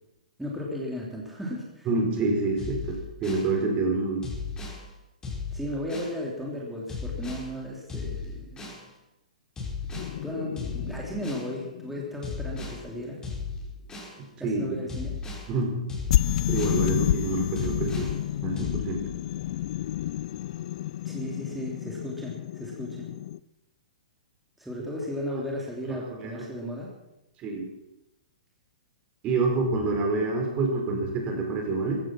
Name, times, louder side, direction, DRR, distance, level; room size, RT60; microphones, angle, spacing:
voice 1, 0.4-1.9 5.5-8.7 9.8-9.9 10.2-13.3 14.4-15.2 21.0-23.1 24.6-26.9, left 1 dB, 5° right, -3 dB, 3.1 m, -35 dB
voice 2, 1.9-4.3 14.2-14.6 15.5-15.8 16.5-18.1 18.4-19.0 25.9-26.4 27.4-27.7 29.2-32.0, right 3 dB, 30° right, 2 dB, 4.6 m, -27 dB
sound 1, 2.6-3.5 4.2-4.8 5.2-6.1 6.9-7.5 7.9-8.8 9.6-10.1 10.6-11.5 12.2-12.8 13.2-14.1 14.9-15.5 15.9-16.8 17.6-18.1 18.6-18.9, left 4 dB, 15° left, 5.7 m, -35 dB
sound 2, 9.9-13.0 16.1-23.4, left 12 dB, 55° left, 0.5 m, -30 dB
15.5 x 15.0 x 6.1 m, 0.91 s
hypercardioid pair, 115°, 4 cm